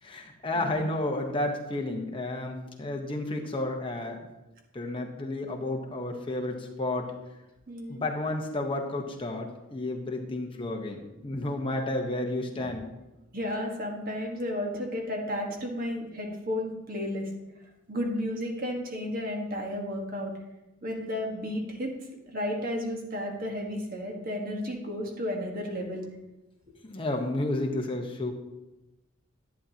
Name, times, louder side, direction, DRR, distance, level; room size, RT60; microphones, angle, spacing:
voice 1, 0.0-4.3 4.7-7.1 7.9-12.9 26.8-28.3, left 2 dB, 25° left, 2 dB, 1.1 m, -31 dB
voice 2, 7.7-8.1 12.5-12.7 13.3-17.3 17.9-20.3 20.8-21.9 22.3-26.1, left 1 dB, 40° right, 1 dB, 1.5 m, -33 dB
11.0 x 9.1 x 2.9 m, 0.99 s
head